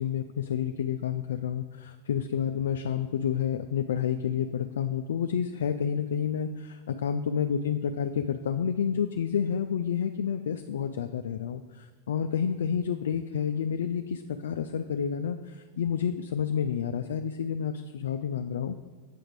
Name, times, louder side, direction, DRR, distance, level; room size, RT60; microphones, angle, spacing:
voice 1, 0.0-18.8, left 8 dB, 75° left, 6 dB, 0.3 m, -29 dB
8.3 x 5.0 x 4.7 m, 1.3 s
hypercardioid pair, 100°, 0 cm